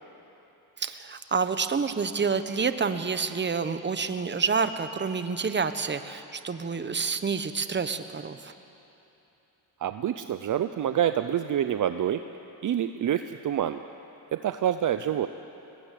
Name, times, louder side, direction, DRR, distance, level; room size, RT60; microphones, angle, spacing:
voice 1, 0.8-8.5, right 5 dB, 25° right, 10 dB, 1.2 m, -28 dB
voice 2, 9.8-12.2 12.6-13.8 14.3-15.3, right 10 dB, 50° right, 10 dB, 0.7 m, -27 dB
22.0 x 20.0 x 8.5 m, 2.9 s
cardioid pair, 95°, 40 cm